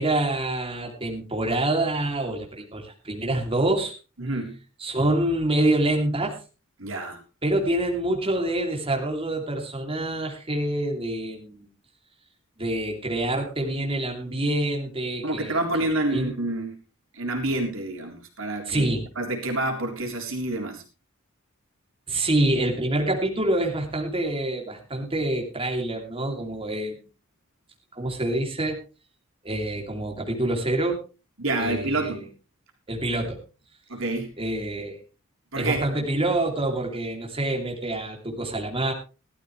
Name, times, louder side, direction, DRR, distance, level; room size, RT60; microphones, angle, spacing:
voice 1, 0.0-4.0 4.8-6.4 7.4-11.7 12.6-15.6 16.1-16.4 18.6-19.1 22.1-27.0 27.9-28.8 29.4-31.0 31.6-32.2 32.9-33.4 34.4-35.0 35.5-38.9, right 1 dB, 25° right, 1 dB, 3.0 m, -26 dB
voice 2, 4.2-4.5 6.8-7.2 15.2-16.7 17.1-18.9 19.2-20.8 31.4-32.2 33.9-34.3 35.5-35.8, right 2 dB, 65° right, 2 dB, 3.6 m, -28 dB
17.0 x 13.0 x 3.3 m, 0.31 s
head